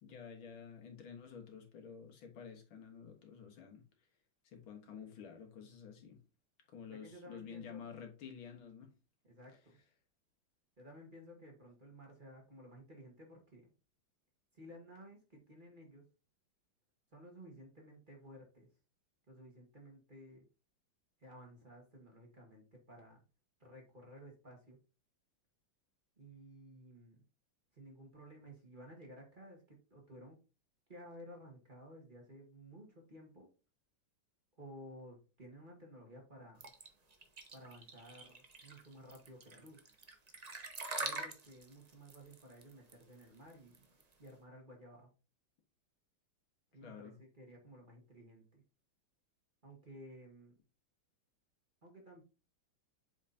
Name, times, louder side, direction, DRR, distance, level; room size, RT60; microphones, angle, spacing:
voice 1, 0.0-3.8 4.4-6.2 6.7-8.9 46.8-47.1, left 7 dB, 85° left, 2.2 m, -50 dB
voice 2, 6.9-7.9 9.2-9.8 10.8-13.7 14.5-16.1 17.1-18.7 19.3-20.5 21.2-23.2 23.6-24.8 26.2-27.2 27.7-30.4 30.9-33.5 34.6-36.6 37.5-39.8 41.0-43.9 44.2-45.1 46.7-48.6 49.6-50.5 51.8-52.2, equal, 25° right, 1.7 m, -55 dB
sound 1, 36.6-44.3, right 3 dB, 75° right, 0.3 m, -45 dB
7.7 x 4.8 x 2.8 m
omnidirectional pair, 2.2 m